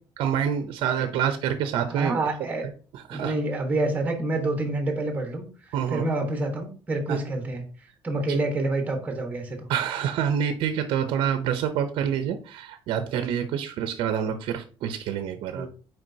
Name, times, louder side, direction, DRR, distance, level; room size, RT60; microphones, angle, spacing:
voice 1, 0.2-2.2 2.6-3.3 5.7-6.0 7.1-7.2 9.7-15.7, right 8 dB, 70° right, 9 dB, 0.6 m, -27 dB
voice 2, 1.9-2.6 3.1-7.6 8.0-9.7 15.5-15.7, right 2 dB, 15° right, 4 dB, 1.2 m, -28 dB
7.5 x 4.7 x 2.7 m, 0.39 s
cardioid pair, 160°, 9 cm